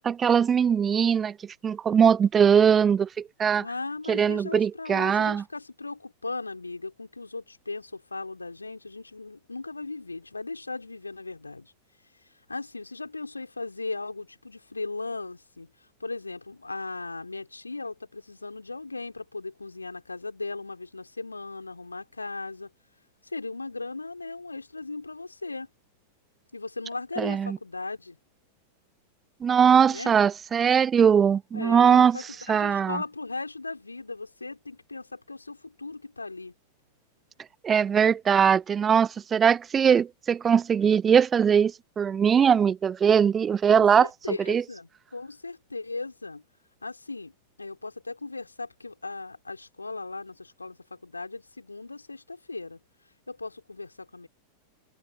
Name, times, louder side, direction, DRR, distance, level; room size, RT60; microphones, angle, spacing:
voice 1, 0.0-1.4 1.6-3.6 4.1-5.4 27.2-27.6 29.4-32.2 32.5-33.0 37.6-44.1 44.5-44.6, right 7 dB, 20° right, 0.4 m, -21 dB
voice 2, 3.6-11.7 12.2-22.7 23.2-25.7 26.5-28.2 29.9-30.2 31.5-36.5 43.7-46.4 46.8-47.3 47.6-52.8 53.3-54.3, left 3 dB, 80° left, 3.2 m, -37 dB
figure-of-eight pair, 90°, 0 cm